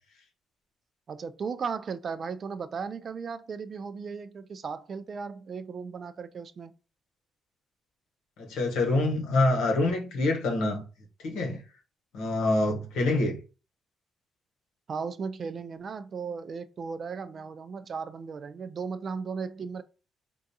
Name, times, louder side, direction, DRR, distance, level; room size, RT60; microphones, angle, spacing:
voice 1, 1.1-6.7 14.9-19.8, right 5 dB, 45° right, 0.3 m, -36 dB
voice 2, 8.4-10.8 11.2-11.6 12.1-13.4, left 2 dB, 90° left, 0.9 m, -26 dB
3.6 x 2.3 x 2.7 m
cardioid pair, 90°, 0 cm